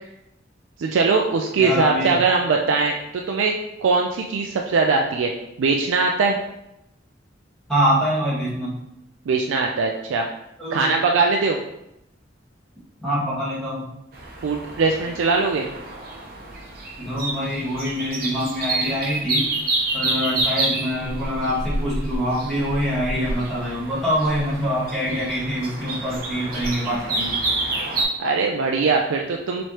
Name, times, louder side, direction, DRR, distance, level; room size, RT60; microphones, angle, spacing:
voice 1, 0.8-5.3 5.6-6.4 9.3-10.3 10.7-11.6 14.4-15.7 28.2-29.6, right 4 dB, 85° right, 1 dB, 0.4 m, -21 dB
voice 2, 1.6-2.2 7.7-8.8 10.6-11.0 13.0-13.9 17.0-19.5 19.9-27.4, equal, ahead, -9 dB, 1.4 m, -25 dB
sound 1, 14.1-28.0, right 2 dB, 50° right, 0.8 m, -28 dB
4.6 x 3.1 x 2.9 m, 0.83 s
head